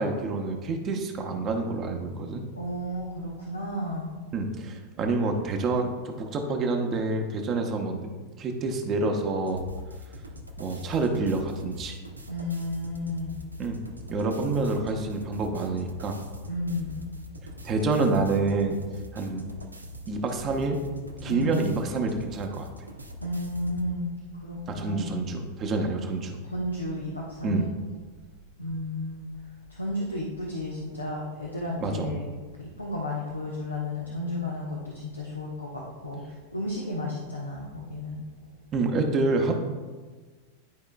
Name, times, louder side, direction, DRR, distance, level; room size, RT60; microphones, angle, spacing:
voice 1, 0.0-2.4 4.3-8.1 8.4-9.6 10.6-12.0 13.6-13.8 14.1-16.2 17.6-18.8 19.1-19.5 20.1-20.8 21.2-22.7 24.7-26.4 27.4-27.7 31.8-32.1 38.7-39.5, right 3 dB, 30° right, 3 dB, 0.9 m, -27 dB
voice 2, 2.5-4.1 12.3-13.4 16.5-17.0 21.2-21.7 23.2-25.2 26.5-27.7 28.6-29.3 29.7-32.3 32.6-38.2, left 1 dB, 85° left, -3 dB, 0.9 m, -33 dB
sound 1, 9.5-23.9, left 1 dB, 85° right, 0.7 m, -43 dB
11.5 x 4.8 x 2.3 m, 1.4 s
figure-of-eight pair, 90°, 0 cm